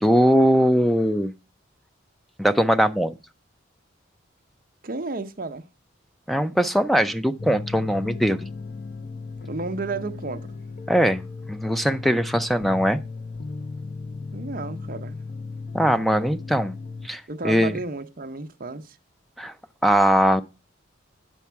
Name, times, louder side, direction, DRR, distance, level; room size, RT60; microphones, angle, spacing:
voice 1, 0.0-1.3 2.4-3.2 6.3-8.4 10.9-13.0 15.7-16.8 17.0-17.8 19.4-19.5 19.8-20.4, equal, ahead, 0.4 m, -21 dB
voice 2, 4.8-5.7 9.5-10.6 14.3-15.2 17.3-19.0, right 3 dB, 45° right, 0.8 m, -32 dB
sound 1, 7.4-17.1, left 4 dB, 45° left, 0.6 m, -36 dB
9.3 x 7.2 x 4.5 m
head